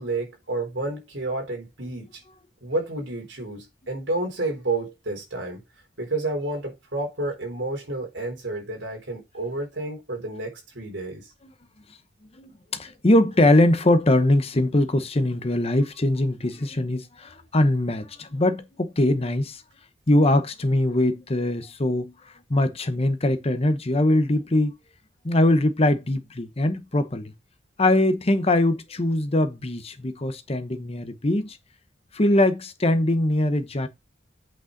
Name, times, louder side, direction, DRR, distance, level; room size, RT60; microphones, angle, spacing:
voice 1, 0.0-2.2 2.6-5.6 6.0-11.3, right 2 dB, 70° right, 3.8 m, -30 dB
voice 2, 12.4-19.6 20.1-22.1 22.5-24.7 25.2-27.3 27.8-31.6 32.1-33.9, left 1 dB, 30° left, 0.8 m, -22 dB
8.4 x 5.5 x 3.9 m
head